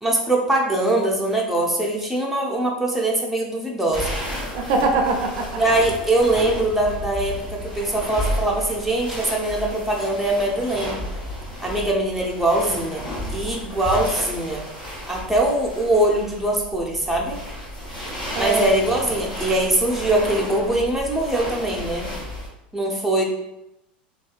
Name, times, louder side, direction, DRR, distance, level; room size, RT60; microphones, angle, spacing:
voice 1, 0.0-4.1 5.6-11.0 11.6-13.0 13.3-14.7 15.1-17.4 18.4-22.1 22.7-23.2, right 1 dB, 5° right, -2 dB, 0.5 m, -22 dB
sound 1, 3.9-22.5, equal, 15° left, 1.5 m, -32 dB
voice 2, 4.5-5.6 18.3-18.7, right 3 dB, 55° right, 2 dB, 0.4 m, -22 dB
2.6 x 2.2 x 2.4 m, 0.89 s
hypercardioid pair, 90°, 5 cm